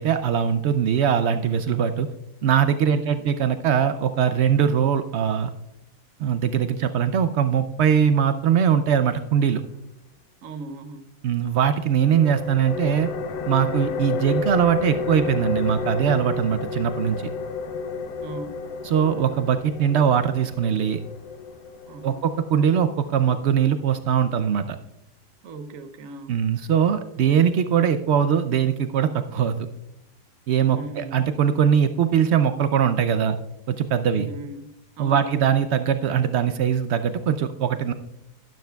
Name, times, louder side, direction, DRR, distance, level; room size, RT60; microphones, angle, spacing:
voice 1, 0.0-2.1 2.4-5.5 6.2-9.6 11.2-13.1 13.4-17.3 18.8-21.0 22.0-24.8 26.3-29.6 30.5-33.4 33.7-34.3 35.0-37.9, right 8 dB, 80° right, 9 dB, 0.5 m, -21 dB
voice 2, 2.9-3.5 10.4-11.0 18.2-18.6 21.9-22.2 25.4-26.3 30.7-31.2 34.1-35.4, right 2 dB, 60° right, 9 dB, 1.1 m, -38 dB
sound 1, 12.0-23.4, left 4 dB, 85° left, 1.4 m, -31 dB
12.5 x 12.0 x 2.3 m, 0.86 s
omnidirectional pair, 1.7 m